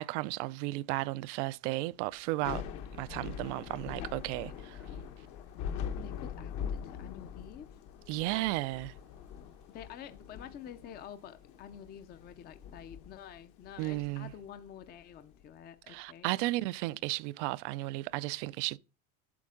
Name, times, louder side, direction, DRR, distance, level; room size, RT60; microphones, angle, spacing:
voice 1, 0.0-2.6 2.9-4.8 8.1-8.9 13.8-14.3 15.9-18.8, right 19 dB, 65° right, 0.5 m, -34 dB
Thunder / Rain, 2.3-15.4, left 8 dB, 50° left, 1.0 m, -43 dB
voice 2, 6.0-7.8 8.3-8.6 9.7-16.4, left 9 dB, 25° left, 0.5 m, -49 dB
8.5 x 6.1 x 3.7 m
supercardioid pair, 140°, 38 cm